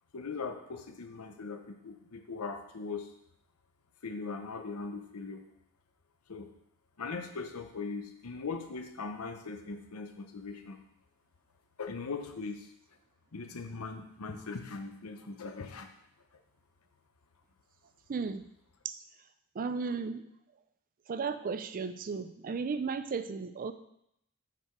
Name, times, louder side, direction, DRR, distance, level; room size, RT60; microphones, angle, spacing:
voice 1, 0.1-3.1 4.0-5.4 6.3-6.5 7.0-10.8 11.8-12.7 13.3-15.9, left 4 dB, 85° left, 6 dB, 0.8 m, -40 dB
voice 2, 18.1-18.4 19.6-20.2 21.1-23.7, right 5 dB, 40° right, 11 dB, 0.4 m, -34 dB
5.9 x 4.8 x 4.6 m, 0.76 s
head